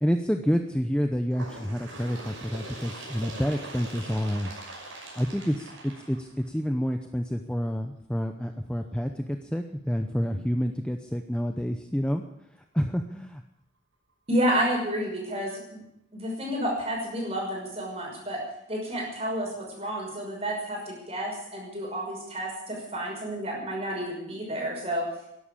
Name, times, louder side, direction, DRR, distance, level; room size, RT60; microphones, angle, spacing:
voice 1, 0.0-4.5 5.2-12.2 12.7-13.4, equal, 5° left, 5 dB, 0.7 m, -28 dB
Bird, 1.3-6.7 7.6-7.7 8.1-8.2 9.1-9.2 10.1-10.2 11.1-11.2, right 2 dB, 85° right, 5.9 m, -42 dB
voice 2, 14.3-15.8 16.1-18.4 18.7-25.0, equal, 30° right, -1 dB, 5.8 m, -30 dB
13.0 x 11.5 x 8.6 m, 0.81 s
head